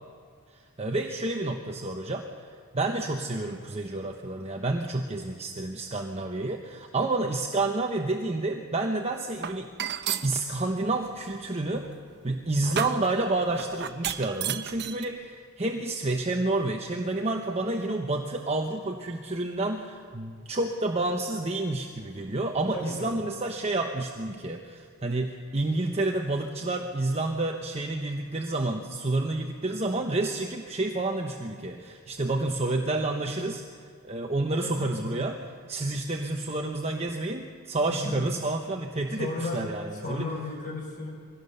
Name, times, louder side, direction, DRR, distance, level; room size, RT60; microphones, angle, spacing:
voice 1, 0.8-2.3 2.7-11.9 12.2-33.6 34.0-35.4 35.7-40.2, right 2 dB, 30° right, 3 dB, 1.0 m, -29 dB
sound 1, 9.4-10.3 11.1-15.0, right 9 dB, 50° right, 0.8 m, -34 dB
voice 2, 22.7-23.2 34.6-35.1 37.9-38.3 39.2-39.6 39.9-41.1, left 2 dB, 40° left, -1 dB, 5.8 m, -34 dB
22.5 x 17.0 x 6.8 m, 2.1 s
head